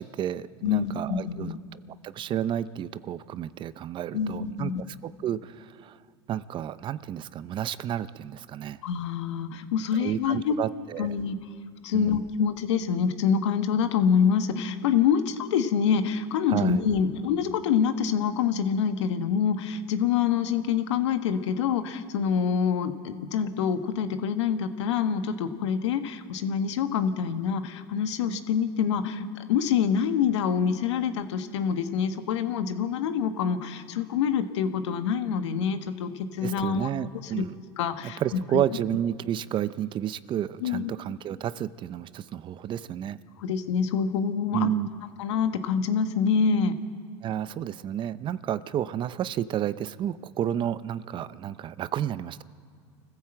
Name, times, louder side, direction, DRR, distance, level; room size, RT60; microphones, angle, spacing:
voice 1, 0.0-6.0 6.3-8.8 10.0-11.1 11.9-12.2 16.5-16.8 36.4-37.6 38.0-43.2 44.5-44.9 47.2-52.4, right 10 dB, 35° right, 16 dB, 0.6 m, -31 dB
voice 2, 0.6-1.6 4.1-4.8 8.8-10.5 11.0-11.4 11.8-36.9 37.2-37.5 37.8-38.2 38.5-38.6 40.6-40.9 43.4-44.7 45.2-46.8, left 7 dB, 80° left, 8 dB, 1.4 m, -26 dB
24.5 x 15.0 x 7.8 m, 2.3 s
supercardioid pair, 120°, 15 cm